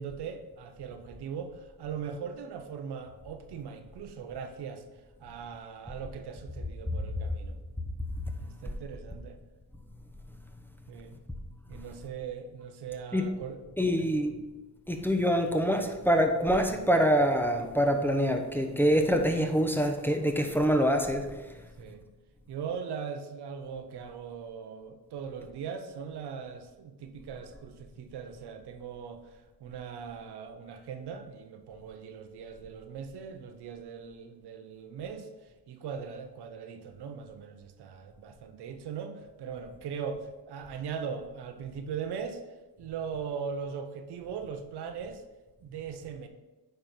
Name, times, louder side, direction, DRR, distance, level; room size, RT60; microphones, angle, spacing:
voice 1, 0.0-4.8 5.2-7.6 8.4-9.4 10.9-11.2 11.7-14.1 21.8-22.1 22.5-35.3 35.7-42.4 42.8-45.2 45.6-46.3, right 6 dB, 65° right, 7 dB, 0.9 m, -40 dB
voice 2, 13.8-14.3 14.9-21.5, equal, 5° left, 3 dB, 0.9 m, -25 dB
9.0 x 3.4 x 5.9 m, 1.1 s
cardioid pair, 90°, 42 cm